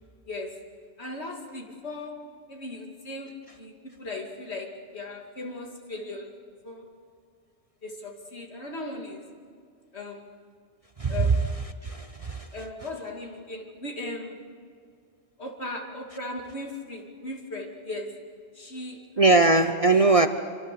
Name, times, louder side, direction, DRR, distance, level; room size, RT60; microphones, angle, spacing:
voice 1, 0.3-0.6 1.0-2.1 2.5-6.3 6.6-6.9 7.8-9.2 9.9-10.3 11.1-11.4 12.5-14.4 15.4-18.2 18.5-19.4, left 2 dB, 65° left, 2 dB, 2.8 m, -37 dB
voice 2, 11.8-12.5 19.2-20.3, right 3 dB, 35° right, 8 dB, 0.7 m, -20 dB
26.5 x 24.5 x 6.8 m, 2.2 s
omnidirectional pair, 1.2 m